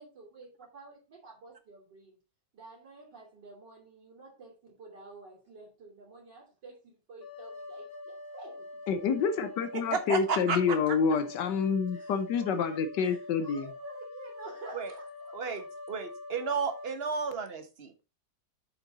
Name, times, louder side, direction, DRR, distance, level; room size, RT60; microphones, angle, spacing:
voice 1, 0.0-2.2 2.5-8.7 9.8-9.9 11.9-15.7, right 2 dB, 75° right, 3.4 m, -50 dB
sound 1, 7.2-17.0, left 2 dB, 60° left, 1.7 m, -45 dB
voice 2, 8.9-13.6, left 6 dB, 75° left, 1.4 m, -28 dB
voice 3, 9.7-10.8 14.7-14.9 15.3-15.6 15.9-18.0, right 5 dB, 40° right, 1.2 m, -32 dB
7.8 x 5.4 x 4.0 m
omnidirectional pair, 1.9 m